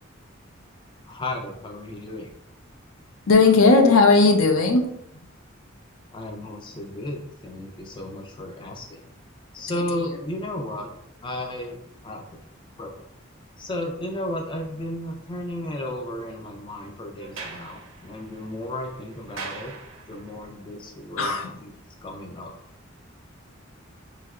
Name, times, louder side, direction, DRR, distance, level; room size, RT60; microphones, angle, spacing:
voice 1, 1.1-2.3 6.1-9.0 9.5-10.9 11.2-12.4 12.8-13.0 13.6-19.8 20.1-21.7 22.0-22.5, left 1 dB, 25° left, 2 dB, 0.3 m, -34 dB
voice 2, 3.3-4.9 21.2-21.5, left 3 dB, 80° left, 4 dB, 0.5 m, -16 dB
Sliding door, 17.2-20.4, right 4 dB, 80° right, 0.6 m, -41 dB
3.1 x 2.7 x 2.4 m, 0.76 s
head